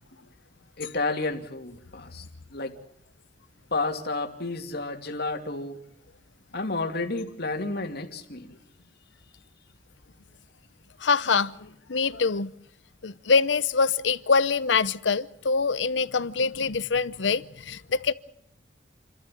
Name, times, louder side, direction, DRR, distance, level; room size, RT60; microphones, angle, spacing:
voice 1, 0.8-2.2 2.5-2.7 3.7-5.8 6.5-8.6, left 3 dB, 60° left, 2.6 m, -31 dB
voice 2, 11.0-12.5 13.0-18.1, left 5 dB, 80° left, 0.8 m, -24 dB
29.0 x 13.0 x 9.0 m
head